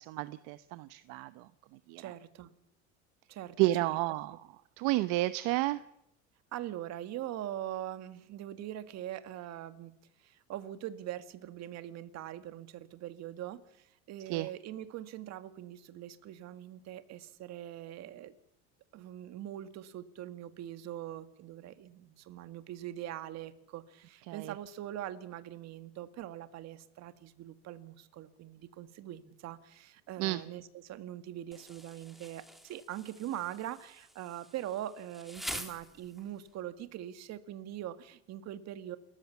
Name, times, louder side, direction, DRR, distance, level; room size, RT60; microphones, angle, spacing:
voice 1, 0.0-1.4 1.9-2.0 3.6-4.3 4.8-5.8 14.3-14.5 24.3-24.5 30.2-30.4, right 18 dB, 70° right, 13 dB, 0.9 m, -31 dB
voice 2, 2.0-2.5 3.3-3.9 6.5-9.9 10.2-18.3 18.9-39.0, right 12 dB, 50° right, 11 dB, 1.9 m, -42 dB
Insect, 31.5-36.5, equal, ahead, 2.4 m, -46 dB
29.5 x 14.5 x 7.2 m, 0.80 s
supercardioid pair, 115°, 33 cm